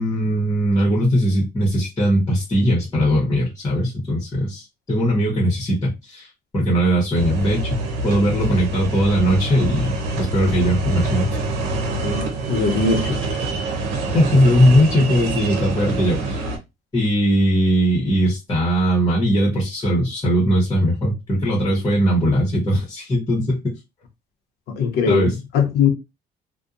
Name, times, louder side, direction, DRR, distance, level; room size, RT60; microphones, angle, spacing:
voice 1, 0.0-7.8 8.0-11.4 14.1-16.4 16.9-23.6 25.1-25.3, equal, 20° left, 1.0 m, -19 dB
sound 1, 7.1-16.6, right 2 dB, 85° right, 0.7 m, -25 dB
voice 2, 11.9-13.2 24.7-25.9, left 5 dB, 75° left, 0.7 m, -21 dB
2.7 x 2.2 x 2.4 m
cardioid pair, 110°, 17 cm